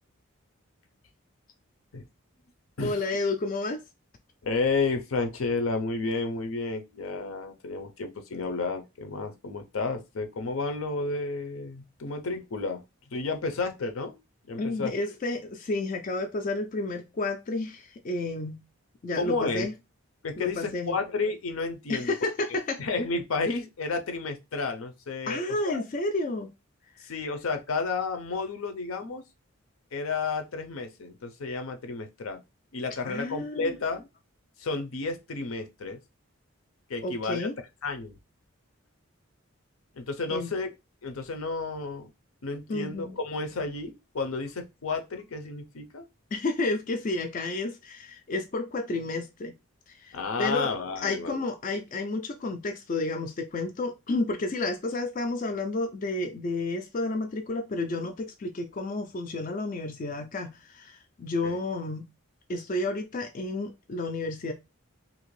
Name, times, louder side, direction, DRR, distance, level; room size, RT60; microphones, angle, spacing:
voice 1, 2.8-3.8 14.6-18.6 19.0-19.7 20.4-21.0 21.9-22.8 25.3-26.5 33.0-33.8 37.0-37.6 40.3-40.5 42.7-43.2 46.3-49.5 49.9-62.1 62.5-64.5, left 2 dB, 40° left, 0.3 m, -31 dB
voice 2, 4.4-12.8 13.1-14.2 14.4-14.9 19.2-19.7 20.2-22.1 22.8-25.8 27.0-29.2 29.9-32.4 32.7-34.0 34.6-36.0 36.9-37.5 37.8-38.2 40.0-40.7 41.0-42.1 42.4-46.0 50.1-51.4 61.4-61.6, left 3 dB, 75° left, 0.6 m, -31 dB
2.9 x 2.5 x 3.1 m
head